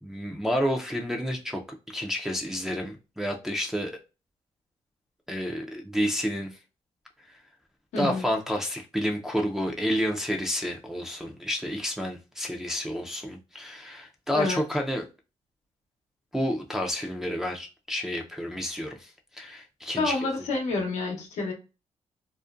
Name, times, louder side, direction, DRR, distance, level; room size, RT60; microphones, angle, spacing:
voice 1, 0.0-3.9 5.3-6.6 8.0-15.1 16.3-20.2, equal, 5° right, 0.4 m, -30 dB
voice 2, 7.9-8.3 14.3-14.6 20.0-21.5, left 3 dB, 90° left, 0.8 m, -28 dB
2.5 x 2.1 x 2.3 m
cardioid pair, 80°, 12 cm